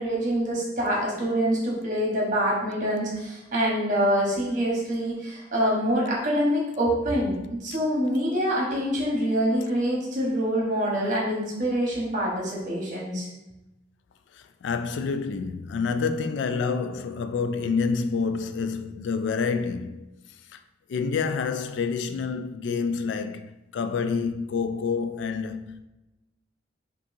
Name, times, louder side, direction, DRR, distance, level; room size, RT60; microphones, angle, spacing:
voice 1, 0.0-13.3, equal, 45° right, 1.2 m, -25 dB
voice 2, 14.3-20.1 20.5-20.6 20.9-25.8, left 5 dB, 75° left, 0.3 m, -28 dB
5.2 x 2.6 x 2.7 m
head